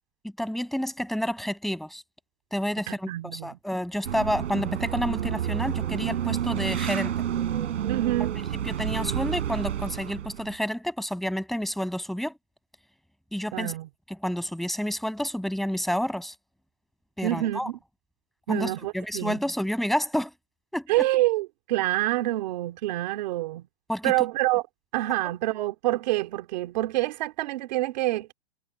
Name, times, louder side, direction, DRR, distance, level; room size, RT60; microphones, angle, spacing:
voice 1, 0.2-2.0 2.5-7.1 8.7-12.3 13.3-13.7 14.1-16.3 17.2-17.7 18.5-20.3 20.7-20.9 23.9-24.1, equal, ahead, 6.5 m, -29 dB
voice 2, 2.9-3.6 7.9-8.4 13.5-13.9 17.2-17.8 18.5-19.4 20.9-23.7 24.0-24.6 24.9-28.3, right 17 dB, 40° right, 3.1 m, -27 dB
sound 1, 4.0-10.6, right 10 dB, 85° right, 6.2 m, -29 dB
supercardioid pair, 180°, 35 cm